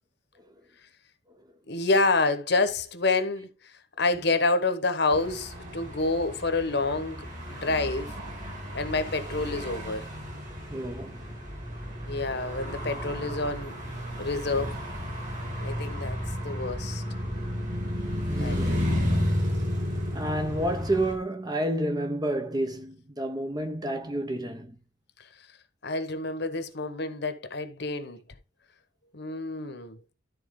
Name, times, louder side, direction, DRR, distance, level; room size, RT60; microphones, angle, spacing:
voice 1, 1.7-8.2 8.7-10.1 12.1-13.8 14.2-14.8 15.6-17.0 18.4-18.7 25.2-25.5 25.8-28.2 29.1-30.0, left 3 dB, 55° left, 1.2 m, -28 dB
sound 1, 5.1-21.1, equal, 40° right, 3.4 m, -32 dB
voice 2, 10.7-11.3 18.3-19.2 20.0-24.8, right 1 dB, 20° right, 0.9 m, -30 dB
12.5 x 4.2 x 3.8 m
head